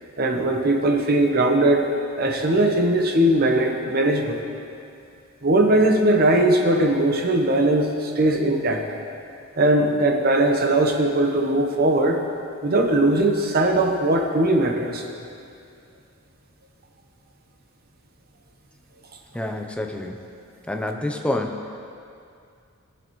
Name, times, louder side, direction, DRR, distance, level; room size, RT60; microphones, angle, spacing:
voice 1, 0.2-1.9 2.2-4.4 5.4-8.8 9.6-12.2 12.6-15.0, right 1 dB, 45° right, 3 dB, 1.0 m, -20 dB
voice 2, 19.3-20.2 20.7-21.7, left 1 dB, 5° left, 3 dB, 0.6 m, -28 dB
16.5 x 7.2 x 3.1 m, 2.5 s
head